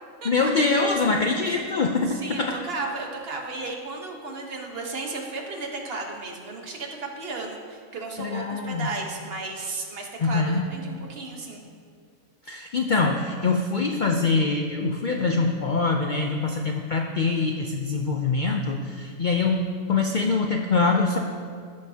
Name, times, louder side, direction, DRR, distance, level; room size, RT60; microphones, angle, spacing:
voice 1, 0.2-2.6 8.2-8.9 10.2-10.7 12.5-21.2, left 4 dB, 80° left, 2 dB, 0.4 m, -24 dB
voice 2, 2.1-11.6, right 3 dB, 45° right, 1 dB, 1.3 m, -34 dB
16.0 x 6.5 x 2.8 m, 2.1 s
omnidirectional pair, 1.5 m